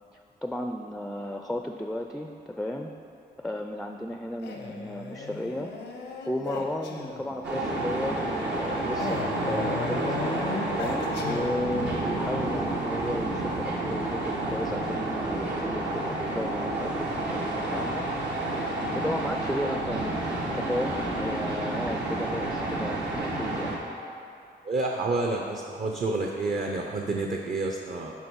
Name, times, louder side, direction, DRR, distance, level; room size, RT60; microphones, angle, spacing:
voice 1, 0.1-2.9 3.4-5.7 6.3-9.2 9.5-10.5 10.8-18.1 18.9-23.8, left 1 dB, ahead, 4 dB, 0.4 m, -34 dB
Male speech man speaking, 4.4-7.4 9.0-12.0, left 4 dB, 85° left, 0.8 m, -36 dB
sound 1, 7.4-23.8, right 2 dB, 75° right, 1.2 m, -30 dB
voice 2, 24.6-28.1, right 3 dB, 45° right, 1 dB, 0.7 m, -29 dB
10.5 x 3.5 x 4.7 m, 2.6 s
cardioid pair, 70°, 18 cm